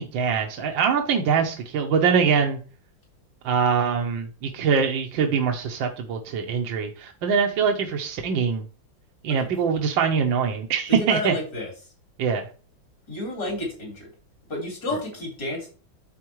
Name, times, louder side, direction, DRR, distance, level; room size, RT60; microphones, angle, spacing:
voice 1, 0.0-2.6 3.4-8.7 9.2-11.3 12.2-12.4, right 6 dB, 80° right, 3 dB, 1.7 m, -23 dB
voice 2, 11.0-11.7 13.1-14.1 14.5-15.7, left 1 dB, 60° left, -3 dB, 4.4 m, -30 dB
12.5 x 4.3 x 3.1 m, 0.37 s
omnidirectional pair, 2.0 m